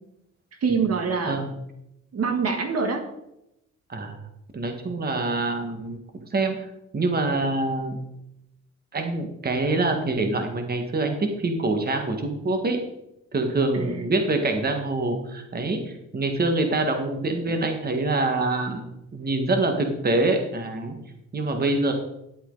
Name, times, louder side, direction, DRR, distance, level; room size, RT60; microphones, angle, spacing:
voice 1, 0.6-1.4 2.1-3.0 13.7-14.1, right 5 dB, 55° right, 5 dB, 1.8 m, -25 dB
voice 2, 4.5-6.0 6.3-6.7 6.9-8.0 8.9-12.8 13.3-18.8 19.1-21.0 21.3-21.9, right 2 dB, 30° right, 5 dB, 1.8 m, -25 dB
11.5 x 8.4 x 4.0 m, 0.86 s
cardioid pair, 90°, 30 cm